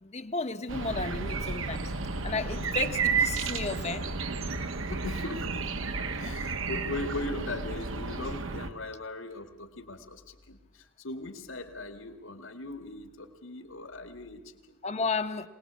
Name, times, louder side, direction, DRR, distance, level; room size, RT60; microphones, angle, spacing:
voice 1, 0.0-1.9 2.2-4.1 6.2-6.4 14.8-15.5, left 3 dB, 30° left, 8 dB, 0.9 m, -33 dB
sound 1, 0.7-8.7, right 4 dB, 75° right, 1.3 m, -32 dB
voice 2, 4.8-5.7 6.2-14.8, left 2 dB, 75° left, 7 dB, 2.2 m, -39 dB
25.0 x 19.5 x 8.3 m, 1.0 s
head